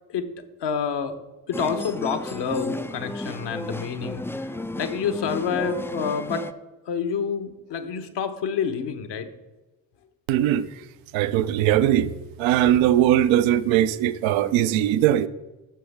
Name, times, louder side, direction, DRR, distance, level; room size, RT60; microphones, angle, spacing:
voice 1, 0.6-1.2 1.5-6.5 6.9-9.3 12.6-12.8, left 6 dB, 55° left, 1.2 m, -28 dB
sound 1, 1.5-6.5, left 2 dB, 5° left, 0.4 m, -33 dB
voice 2, 10.3-10.7 11.1-12.1 12.4-15.3, right 12 dB, 70° right, 0.7 m, -20 dB
12.5 x 7.0 x 3.5 m
hypercardioid pair, 40°, 49 cm